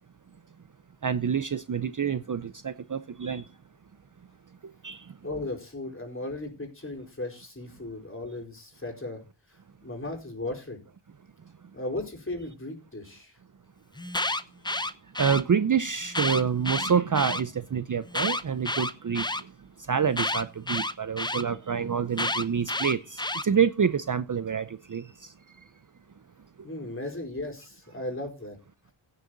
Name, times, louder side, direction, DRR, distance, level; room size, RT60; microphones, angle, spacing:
voice 1, 1.0-3.5 4.8-5.1 15.2-19.3 19.9-25.3, right 7 dB, 40° right, 0.6 m, -27 dB
voice 2, 5.2-9.2 9.8-10.8 11.7-13.3 26.6-28.6, left 2 dB, 25° left, 4.5 m, -36 dB
Alarm, 14.0-15.4 16.1-17.4 18.1-19.4 20.2-21.4 22.2-23.4, left 2 dB, 10° left, 0.7 m, -29 dB
16.5 x 6.8 x 3.9 m
wide cardioid pair, 95°, 48 cm